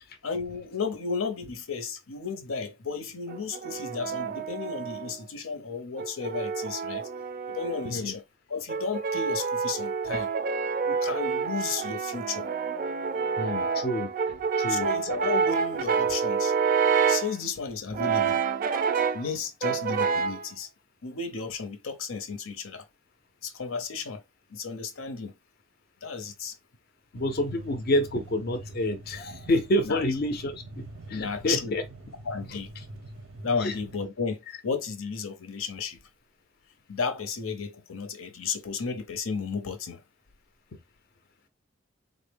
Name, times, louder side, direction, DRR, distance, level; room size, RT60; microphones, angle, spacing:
voice 1, 0.2-7.1 7.5-8.2 8.5-10.3 10.8-12.5 14.7-16.5 17.1-18.4 19.1-20.7 21.0-22.8 23.4-24.2 24.5-25.4 26.0-26.6 29.8-30.0 31.1-31.8 32.2-32.7 33.4-36.0 36.9-40.0, left 5 dB, 90° left, 0.7 m, -33 dB
Brass instrument, 3.3-5.2 6.0-8.0 8.7-17.4 17.9-19.3 19.6-20.4, right 6 dB, 40° right, 0.3 m, -28 dB
voice 2, 13.4-14.9 27.1-31.8 32.5-32.8 33.6-33.7, left 1 dB, 50° left, 0.5 m, -29 dB
sound 1, 27.1-34.1, right 1 dB, 90° right, 0.6 m, -44 dB
3.7 x 2.1 x 3.3 m
head